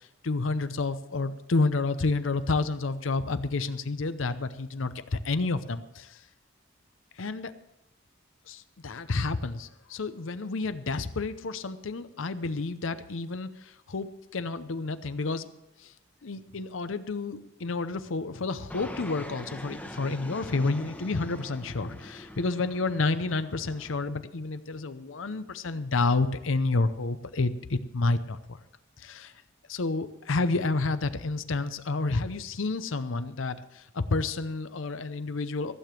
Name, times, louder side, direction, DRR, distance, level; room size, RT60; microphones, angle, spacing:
voice 1, 0.2-6.2 7.2-7.5 8.5-15.5 15.8-15.9 16.2-28.6 29.0-29.3 29.7-35.7, left 3 dB, 80° left, 12 dB, 0.7 m, -30 dB
Fixed-wing aircraft airplane, 18.7-24.1, left 1 dB, 10° left, 1.0 m, -43 dB
15.0 x 6.9 x 7.6 m, 0.87 s
head